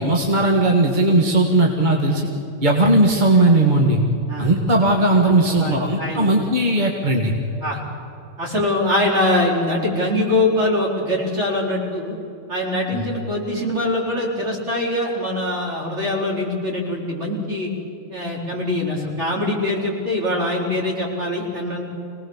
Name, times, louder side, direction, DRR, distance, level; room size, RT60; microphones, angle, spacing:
voice 1, 0.0-2.3 2.6-4.0 4.4-7.3 12.9-13.1, right 1 dB, 35° right, 1 dB, 1.9 m, -17 dB
voice 2, 5.2-6.4 7.6-7.8 8.4-12.1 12.5-17.7 18.1-21.8, left 1 dB, 60° right, -2 dB, 4.9 m, -23 dB
25.5 x 19.0 x 7.3 m, 3.0 s
omnidirectional pair, 1.4 m